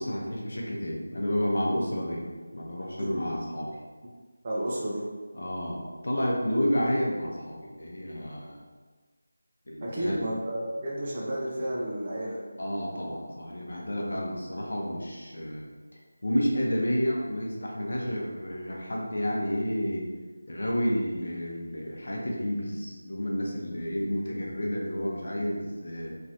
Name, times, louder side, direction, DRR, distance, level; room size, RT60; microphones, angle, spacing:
voice 1, 0.0-3.7 5.4-8.6 9.7-10.2 12.6-15.7 15.9-20.1 20.5-26.1, equal, 60° left, -2 dB, 0.7 m, -30 dB
voice 2, 4.4-5.0 9.8-12.4, right 1 dB, 20° right, -5 dB, 0.3 m, -31 dB
3.1 x 2.3 x 2.7 m, 1.4 s
figure-of-eight pair, 180°, 0 cm